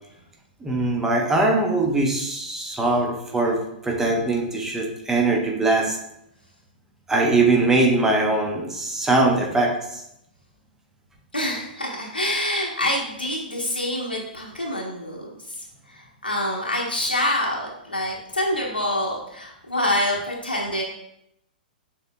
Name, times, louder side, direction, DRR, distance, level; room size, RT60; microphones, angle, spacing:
voice 1, 0.6-6.0 7.1-10.0, right 2 dB, 10° right, 1 dB, 0.8 m, -21 dB
voice 2, 11.3-15.5 15.9-20.8, left 1 dB, 85° left, -3 dB, 0.9 m, -26 dB
6.5 x 3.4 x 2.2 m, 0.78 s
figure-of-eight pair, 110°, 5 cm